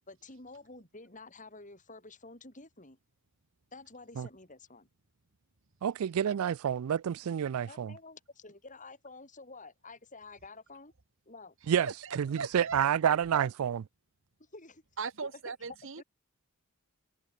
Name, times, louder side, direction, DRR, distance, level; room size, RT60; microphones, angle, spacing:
voice 1, 0.1-3.0 3.7-4.9 7.7-10.9 11.2-11.5 14.4-14.8 15.2-15.3 16.0-16.1, left 3 dB, 35° left, 6.6 m, -50 dB
voice 2, 5.8-7.9 11.7-11.9 12.2-13.8, right 8 dB, 90° right, 0.4 m, -29 dB
voice 3, 11.8-12.8 15.0-16.0, right 5 dB, 60° right, 1.2 m, -38 dB
head